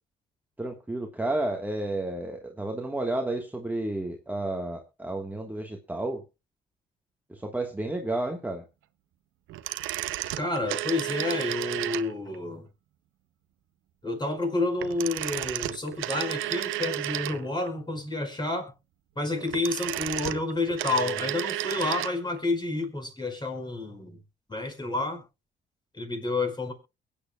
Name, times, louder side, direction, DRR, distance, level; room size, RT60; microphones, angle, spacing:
voice 1, 0.6-6.2 7.3-8.6, right 2 dB, 10° right, 3 dB, 1.5 m, -31 dB
sound 1, 9.5-12.4 14.8-17.7 19.3-22.2 22.4-22.5, right 15 dB, 90° right, 0.7 m, -32 dB
voice 2, 10.4-12.6 14.0-18.7 19.1-24.2 24.5-25.2 25.9-26.7, left 2 dB, 20° left, 5 dB, 5.0 m, -29 dB
23.0 x 8.9 x 2.4 m, 0.27 s
cardioid pair, 90°, 20 cm